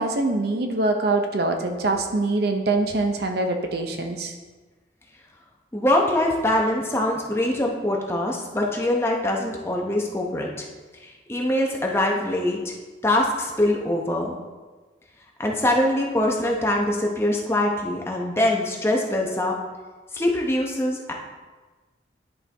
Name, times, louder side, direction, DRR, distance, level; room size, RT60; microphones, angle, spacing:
voice 1, 0.0-4.3, right 2 dB, 60° right, 4 dB, 0.7 m, -24 dB
voice 2, 5.7-10.7 11.0-12.7 13.0-14.3 15.4-19.6 20.1-21.1, left 1 dB, 15° left, -1 dB, 0.8 m, -23 dB
11.0 x 4.5 x 3.4 m, 1.3 s
head